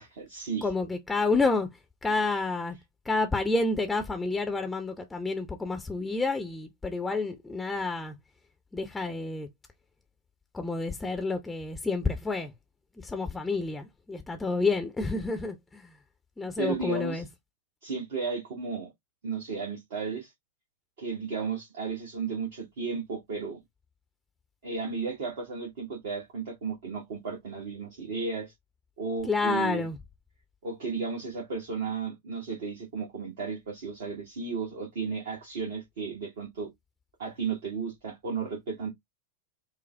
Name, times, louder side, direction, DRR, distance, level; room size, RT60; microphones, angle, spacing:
voice 1, 0.0-0.7 16.6-17.2 17.8-18.9 19.2-20.3 21.0-23.6 24.6-28.5 29.0-29.8 30.6-36.7 37.2-38.9, right 5 dB, 55° right, 1.3 m, -34 dB
voice 2, 0.6-1.7 2.0-2.8 3.0-8.2 8.7-9.5 10.5-12.5 13.0-15.9 16.4-17.3 29.3-30.0, left 3 dB, 10° left, 0.7 m, -29 dB
5.3 x 2.1 x 3.2 m
figure-of-eight pair, 90°, 0 cm